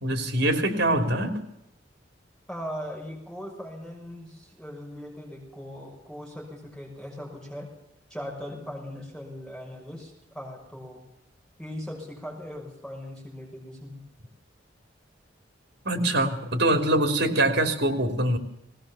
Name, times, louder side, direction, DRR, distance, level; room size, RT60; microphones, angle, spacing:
voice 1, 0.0-1.4 15.8-18.4, right 1 dB, 60° right, 6 dB, 3.4 m, -24 dB
voice 2, 2.5-7.7 8.1-11.0 11.6-14.0, equal, 5° left, -1 dB, 6.0 m, -39 dB
20.0 x 18.0 x 7.2 m, 0.84 s
head